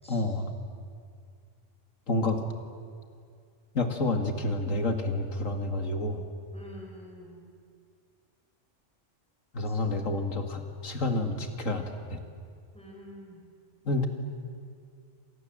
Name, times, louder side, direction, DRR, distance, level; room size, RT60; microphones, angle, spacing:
voice 1, 0.1-0.5 2.1-2.4 3.7-6.2 9.5-11.8 12.1-12.2 13.8-14.1, left 2 dB, 85° left, 5 dB, 2.6 m, -29 dB
voice 2, 6.5-7.4 9.6-9.9 12.7-13.4, equal, 5° left, -1 dB, 6.3 m, -48 dB
29.5 x 26.0 x 7.7 m, 2.2 s
omnidirectional pair, 1.3 m